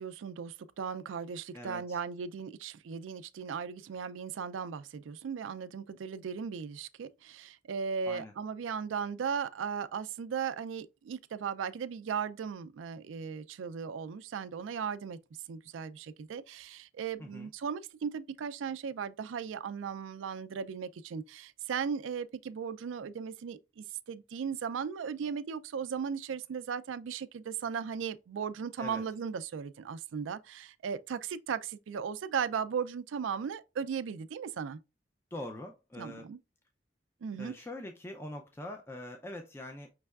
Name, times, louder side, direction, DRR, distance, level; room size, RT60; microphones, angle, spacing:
voice 1, 0.0-15.2 15.5-34.8 36.0-36.4 37.2-37.5, right 6 dB, 85° right, 0.4 m, -37 dB
voice 2, 1.5-2.0 8.1-8.3 17.2-17.5 28.8-29.0 35.3-36.3 37.4-39.9, left 1 dB, 15° left, 0.4 m, -43 dB
5.3 x 3.3 x 2.3 m
head